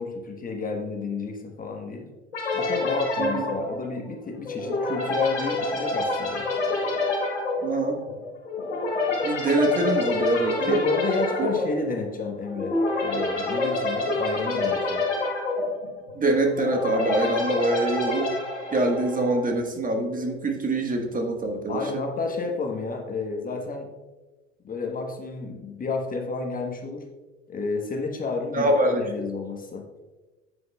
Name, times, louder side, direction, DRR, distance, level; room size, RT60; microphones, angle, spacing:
voice 1, 0.0-2.1 2.5-6.5 10.6-12.7 13.0-15.1 21.7-23.9 24.6-27.1 27.5-29.8, left 4 dB, 25° left, 2 dB, 1.3 m, -31 dB
sound 1, 2.3-19.5, left 2 dB, 85° left, 2.1 m, -27 dB
voice 2, 7.6-8.0 9.2-10.8 16.1-18.3 18.7-22.0 28.5-29.1, right 2 dB, 25° right, 2 dB, 1.5 m, -24 dB
9.4 x 8.1 x 2.3 m, 1.2 s
hypercardioid pair, 75°, 34 cm